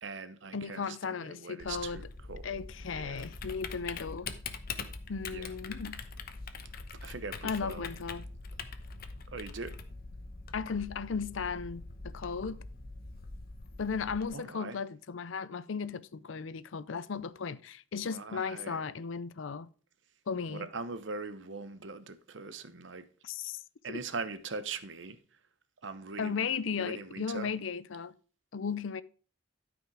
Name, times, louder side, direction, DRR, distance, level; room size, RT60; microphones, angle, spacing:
voice 1, 0.0-2.6 2.9-3.2 5.3-5.5 7.0-7.9 9.3-9.8 14.3-14.8 18.0-18.9 20.5-23.1 23.8-25.2 25.8-26.5 26.8-27.5, right 4 dB, 70° right, 0.9 m, -41 dB
voice 2, 0.5-2.0 2.4-4.3 5.1-6.0 7.4-8.2 10.5-12.6 13.8-19.7 20.3-20.7 23.2-23.6 23.9-24.0 26.2-28.2 28.5-29.0, left 5 dB, 85° left, 0.6 m, -36 dB
Typing, 1.6-14.3, left 4 dB, 50° left, 0.9 m, -43 dB
12.5 x 5.2 x 4.8 m
head